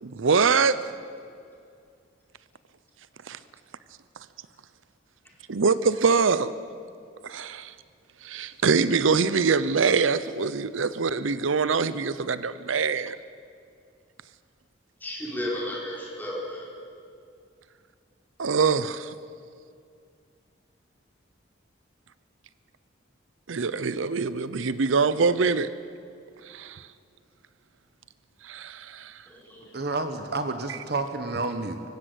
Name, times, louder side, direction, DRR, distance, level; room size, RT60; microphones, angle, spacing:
voice 1, 0.0-0.9 3.3-3.4 5.5-6.5 7.2-7.7 8.2-13.2 18.4-19.1 23.5-25.7 26.4-26.9 28.4-29.2 30.7-30.8, right 5 dB, 90° right, 0.7 m, -24 dB
voice 2, 15.0-16.6 29.3-29.6, left 1 dB, 10° left, 5.1 m, -33 dB
voice 3, 29.7-31.8, right 3 dB, 55° right, 1.3 m, -30 dB
25.0 x 15.5 x 8.2 m
head